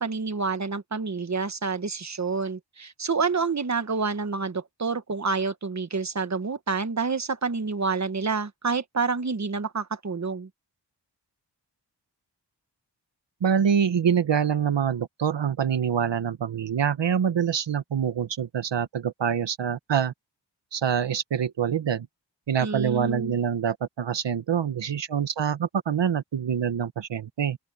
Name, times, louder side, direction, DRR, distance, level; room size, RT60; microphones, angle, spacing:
voice 1, 0.0-10.5 22.6-23.4, right 4 dB, 40° right, 1.4 m, -28 dB
voice 2, 13.4-20.1 20.7-22.1 22.5-27.6, right 8 dB, 80° right, 1.2 m, -25 dB
open air
cardioid pair, 60°, 43 cm